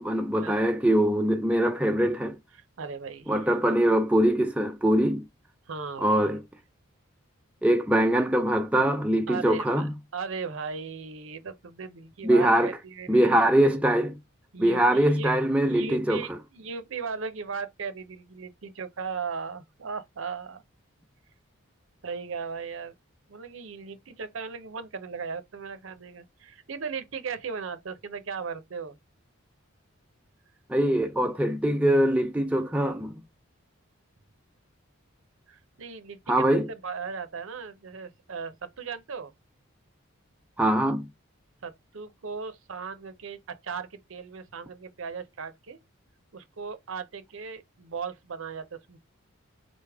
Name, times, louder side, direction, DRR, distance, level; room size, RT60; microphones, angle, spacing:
voice 1, 0.0-2.4 3.3-5.2 6.0-6.4 7.6-9.9 12.2-12.8 13.1-14.1 14.6-16.2 30.7-33.1 36.3-36.7 40.6-41.1, right 1 dB, 5° right, 0.4 m, -23 dB
voice 2, 2.8-3.5 5.7-6.3 9.3-9.9 10.1-13.4 14.5-15.3 15.6-20.6 22.0-22.9 23.3-29.0 35.5-39.3 41.6-45.8 46.3-49.0, right 5 dB, 70° right, 0.6 m, -37 dB
4.1 x 3.4 x 3.4 m
head